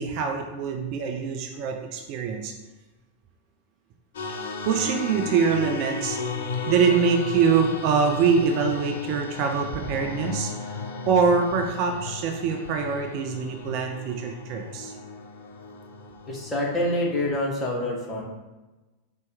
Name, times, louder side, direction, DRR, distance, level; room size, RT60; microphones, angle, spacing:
voice 1, 0.0-2.5 4.7-6.2 6.7-10.5 11.1-14.9, right 6 dB, 40° right, 3 dB, 0.3 m, -24 dB
sound 1, 4.1-17.4, left 4 dB, 55° left, 0.4 m, -35 dB
voice 2, 16.3-18.2, left 1 dB, 15° left, -2 dB, 0.8 m, -26 dB
4.1 x 2.1 x 3.3 m, 1.1 s
figure-of-eight pair, 90°, 0 cm